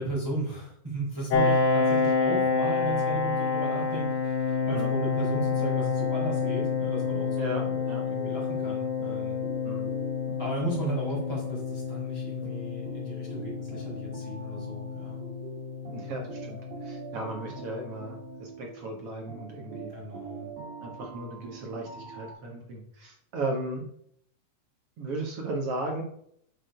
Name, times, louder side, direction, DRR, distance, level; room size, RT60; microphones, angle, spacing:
voice 1, 0.0-7.8 8.0-9.4 10.4-15.2 19.9-20.5, right 2 dB, 5° right, -5 dB, 2.9 m, -35 dB
Piano, 1.3-16.7, left 5 dB, 60° left, 2.0 m, -28 dB
sound 1, 4.5-22.3, right 5 dB, 70° right, 3.6 m, -44 dB
voice 2, 7.4-8.0 9.6-10.0 15.9-19.9 20.8-23.8 25.0-26.0, right 2 dB, 55° right, 1 dB, 1.9 m, -36 dB
6.7 x 6.1 x 5.1 m, 0.68 s
omnidirectional pair, 4.1 m